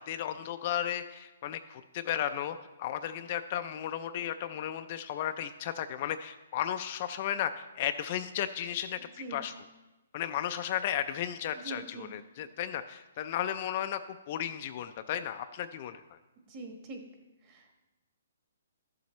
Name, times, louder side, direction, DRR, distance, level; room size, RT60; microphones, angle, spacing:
voice 1, 0.0-9.0 9.3-9.6 10.1-14.0 14.3-16.2, left 10 dB, 35° left, 9 dB, 0.3 m, -34 dB
voice 2, 9.0-9.5 11.5-12.1 16.5-17.0 17.4-17.8, right 3 dB, 30° right, 2 dB, 1.3 m, -44 dB
13.0 x 7.1 x 3.1 m, 1.1 s
hypercardioid pair, 160°, 0 cm